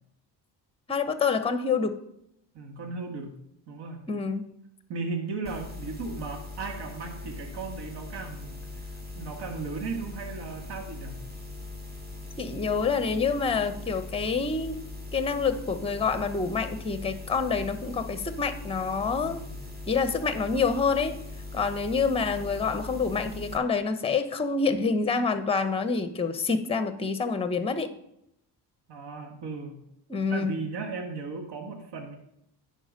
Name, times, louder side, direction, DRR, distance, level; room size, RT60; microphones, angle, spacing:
voice 1, 0.9-2.0 4.1-4.5 12.4-14.8 15.1-19.4 19.9-21.2 21.5-27.9 30.1-30.5, left 5 dB, 10° left, 10 dB, 0.8 m, -27 dB
voice 2, 2.5-3.4 3.7-4.1 4.9-8.6 9.1-11.2 19.2-19.6 28.9-29.8 30.3-32.2, right 4 dB, 55° right, 4 dB, 1.7 m, -36 dB
sound 1, 5.4-23.6, left 2 dB, 20° right, 1.8 m, -40 dB
9.8 x 4.4 x 5.4 m, 0.78 s
hypercardioid pair, 60°, 49 cm